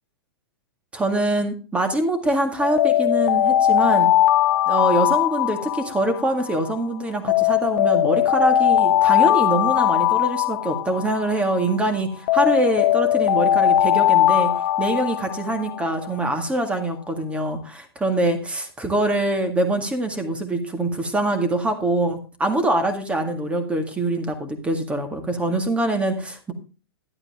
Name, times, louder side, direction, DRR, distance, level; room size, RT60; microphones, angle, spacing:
voice 1, 0.9-4.1 4.7-14.5 14.8-26.5, right 1 dB, 10° right, 7 dB, 1.9 m, -24 dB
Alarm, 2.6-6.7 7.3-11.7 12.3-16.1, left 12 dB, 50° left, 0.8 m, -20 dB
12.0 x 8.7 x 3.6 m, 0.33 s
hypercardioid pair, 135°, 13 cm